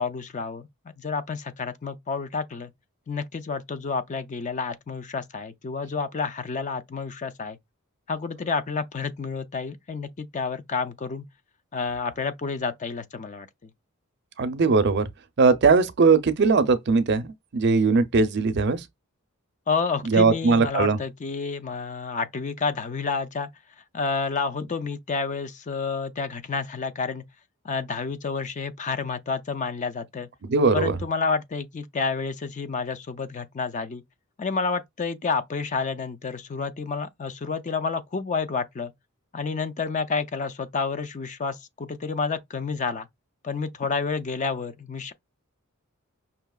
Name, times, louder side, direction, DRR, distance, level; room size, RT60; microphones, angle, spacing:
voice 1, 0.0-2.7 3.1-7.6 8.1-11.3 11.7-13.7 19.7-23.5 23.8-27.2 27.6-30.3 30.7-34.0 34.4-38.9 39.3-43.1 43.4-45.1, left 4 dB, 35° left, 0.4 m, -29 dB
voice 2, 14.4-15.1 15.4-18.8 20.1-21.0 30.4-31.0, right 4 dB, 50° right, 0.5 m, -20 dB
5.6 x 2.8 x 2.3 m
head